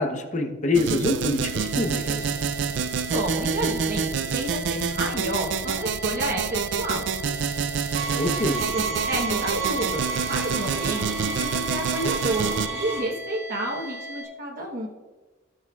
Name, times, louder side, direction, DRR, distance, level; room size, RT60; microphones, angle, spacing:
voice 1, 0.0-2.3 8.0-8.6, left 2 dB, 40° left, 5 dB, 0.9 m, -26 dB
sound 1, 0.7-12.7, right 6 dB, 70° right, 0.4 m, -28 dB
sound 2, 1.4-14.2, right 1 dB, 5° right, 1.3 m, -38 dB
voice 2, 3.1-7.1 8.1-8.2 8.6-14.9, right 1 dB, 45° right, -4 dB, 1.0 m, -30 dB
sound 3, 7.9-13.0, right 4 dB, 85° right, 1.7 m, -31 dB
17.0 x 6.4 x 2.4 m, 1.3 s
head